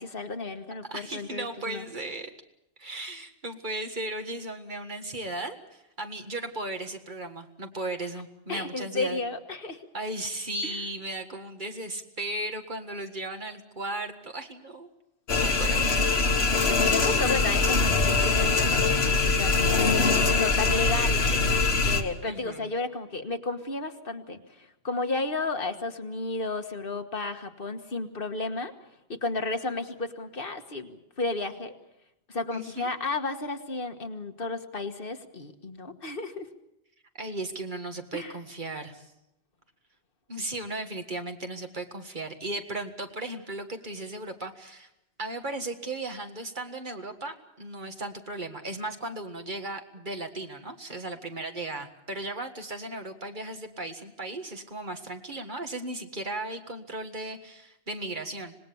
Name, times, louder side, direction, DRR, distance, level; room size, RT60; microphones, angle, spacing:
voice 1, 0.0-1.8 8.5-9.8 10.6-10.8 16.9-19.6 19.9-21.4 21.8-28.7 29.1-31.7 32.3-36.5 38.1-38.3, left 3 dB, 60° left, 7 dB, 1.6 m, -33 dB
voice 2, 0.9-2.3 2.8-9.2 9.9-14.9 15.4-15.8 17.0-17.2 22.2-22.7 32.5-32.9 37.2-39.1 40.3-44.9 45.2-58.6, right 2 dB, 50° right, 5 dB, 1.9 m, -36 dB
sound 1, 15.3-22.0, left 3 dB, 75° left, 1.9 m, -23 dB
25.5 x 19.5 x 7.0 m, 0.87 s
omnidirectional pair, 1.1 m